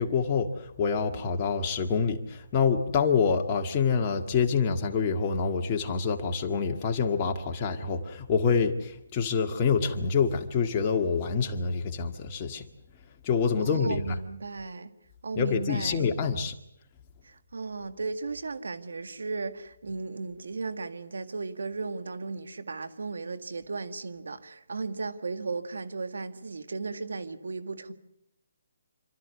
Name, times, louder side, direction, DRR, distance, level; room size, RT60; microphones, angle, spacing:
voice 1, 0.0-12.6 13.2-14.2 15.4-16.5, left 5 dB, 30° left, 1.8 m, -26 dB
voice 2, 13.6-14.9 15.2-16.1 17.2-27.9, right 4 dB, 80° right, 2.0 m, -35 dB
27.5 x 13.5 x 9.6 m
hypercardioid pair, 155°, 0 cm